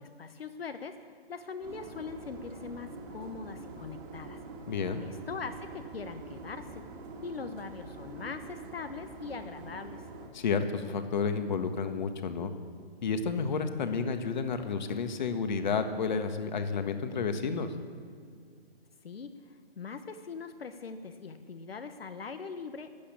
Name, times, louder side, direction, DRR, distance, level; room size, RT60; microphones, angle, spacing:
voice 1, 0.0-4.4 5.0-6.8 7.2-10.1 19.0-22.9, left 5 dB, 70° left, 9 dB, 1.2 m, -41 dB
sound 1, 1.6-10.3, right 3 dB, 20° right, 1.8 m, -45 dB
voice 2, 4.7-5.0 10.3-12.5 13.0-17.7, left 5 dB, 45° left, 8 dB, 1.5 m, -31 dB
15.5 x 10.5 x 8.7 m, 2.2 s
hypercardioid pair, 160°, 31 cm